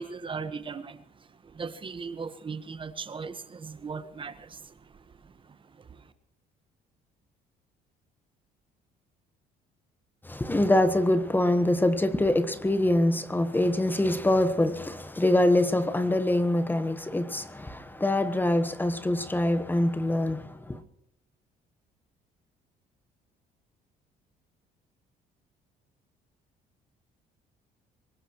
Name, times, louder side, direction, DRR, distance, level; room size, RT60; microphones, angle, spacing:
voice 1, 0.0-6.1, right 5 dB, 30° right, 1.2 m, -39 dB
voice 2, 10.2-20.8, left 1 dB, 10° left, 1.1 m, -24 dB
23.5 x 20.0 x 3.0 m
cardioid pair, 110°, 17 cm